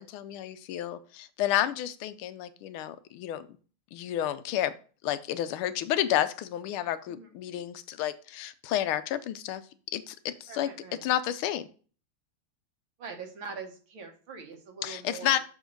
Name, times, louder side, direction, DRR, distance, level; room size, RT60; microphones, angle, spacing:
voice 1, 0.0-3.5 3.9-4.7 5.0-9.6 9.9-10.7 11.0-11.7 14.8-15.4, left 12 dB, 85° left, 13 dB, 1.5 m, -30 dB
voice 2, 7.1-7.6 10.5-11.1 13.0-15.4, right 5 dB, 70° right, 4 dB, 2.0 m, -43 dB
6.5 x 5.0 x 3.8 m, 0.39 s
omnidirectional pair, 2.4 m